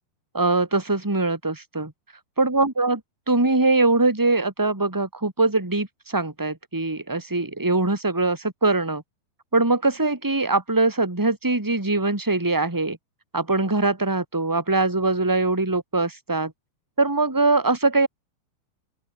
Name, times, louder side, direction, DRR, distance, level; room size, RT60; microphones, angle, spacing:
voice 1, 0.3-1.9 2.4-3.0 3.3-9.0 9.5-13.0 13.3-16.5 17.0-18.1, right 2 dB, 5° right, 3.0 m, -22 dB
open air
omnidirectional pair, 4.8 m